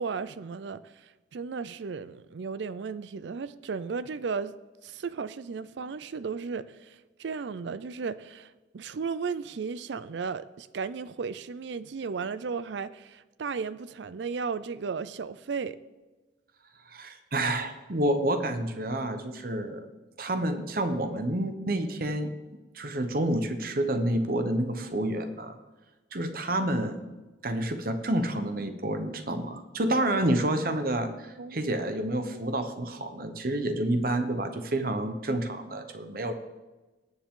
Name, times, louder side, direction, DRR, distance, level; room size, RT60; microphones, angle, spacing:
voice 1, 0.0-4.5 4.8-15.8 31.4-31.6, right 5 dB, 70° right, 0.4 m, -35 dB
voice 2, 16.9-19.9 20.2-22.3 22.7-25.6 26.1-27.0 27.4-36.3, right 1 dB, 50° right, 1.0 m, -29 dB
18.5 x 7.2 x 3.7 m
head